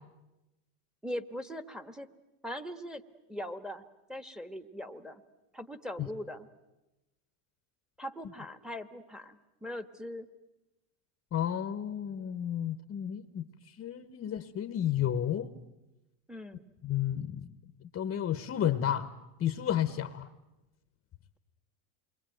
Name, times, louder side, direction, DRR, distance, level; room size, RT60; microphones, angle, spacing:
voice 1, 1.0-2.1 2.4-3.0 3.3-3.8 4.1-5.2 5.5-6.5 8.0-10.3 16.3-16.7, equal, ahead, 1.3 m, -40 dB
voice 2, 11.3-15.5 16.8-17.5 17.8-19.1 19.4-20.3, left 10 dB, 30° left, 1.1 m, -32 dB
28.0 x 22.5 x 9.2 m
supercardioid pair, 115°, 47 cm